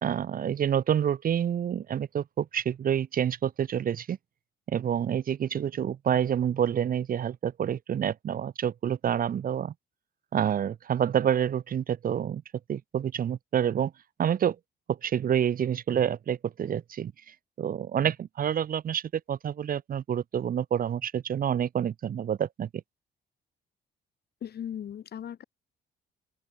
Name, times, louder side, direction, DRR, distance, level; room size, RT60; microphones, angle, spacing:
voice 1, 0.0-4.2 4.7-9.7 10.3-12.4 12.7-13.9 14.2-14.6 14.9-22.7, right 9 dB, 45° right, 0.6 m, -28 dB
voice 2, 24.4-25.4, left 9 dB, 55° left, 1.2 m, -37 dB
open air
cardioid pair, 90°, 20 cm